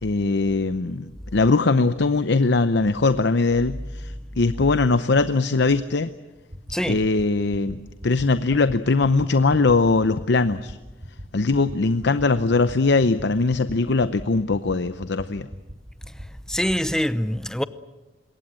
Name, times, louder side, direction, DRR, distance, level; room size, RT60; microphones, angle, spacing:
voice 1, 0.0-6.1 6.9-10.8 11.3-15.5, left 3 dB, 70° left, 0.7 m, -21 dB
sound 1, 6.5-6.7 7.0-7.2 7.5-7.7 8.0-8.2 8.5-8.7 9.0-9.2 9.5-9.7 10.0-10.2 10.5-10.7 11.0-11.2 11.5-11.7 12.0-12.2 12.5-12.7 13.0-13.2 13.5-13.7 14.0-14.2 14.5-14.7 15.0-15.2 15.5-15.7 16.0-16.2 16.5-16.7, equal, 50° right, 6.2 m, -38 dB
voice 2, 16.5-17.6, equal, 5° left, 0.8 m, -24 dB
26.0 x 22.5 x 7.7 m
head